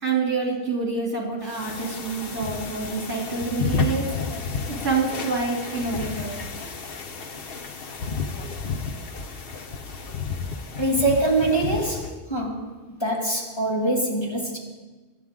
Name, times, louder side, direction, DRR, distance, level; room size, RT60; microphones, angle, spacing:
voice 1, 0.0-4.0 4.7-6.4, right 4 dB, 70° right, -2 dB, 3.4 m, -27 dB
sound 1, 1.5-12.2, left 4 dB, 55° left, 1.1 m, -31 dB
voice 2, 10.8-12.7 13.0-14.6, right 2 dB, 20° left, -3 dB, 2.4 m, -24 dB
24.0 x 9.8 x 3.7 m, 1.3 s
omnidirectional pair, 1.2 m